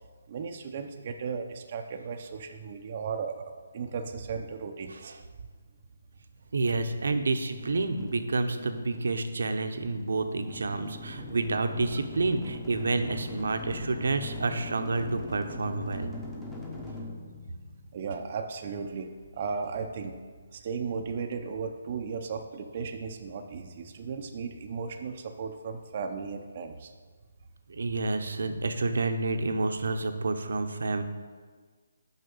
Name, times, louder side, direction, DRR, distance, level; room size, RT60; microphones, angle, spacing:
voice 1, 0.3-5.1 17.9-20.2 20.5-26.9, right 5 dB, 35° right, 4 dB, 0.6 m, -36 dB
voice 2, 4.9-5.2 6.5-16.1 27.7-31.0, right 3 dB, 75° right, 8 dB, 0.9 m, -29 dB
sound 1, 7.5-18.5, left 2 dB, 5° left, 0.9 m, -41 dB
6.5 x 5.8 x 7.0 m, 1.5 s
hypercardioid pair, 165°, 0 cm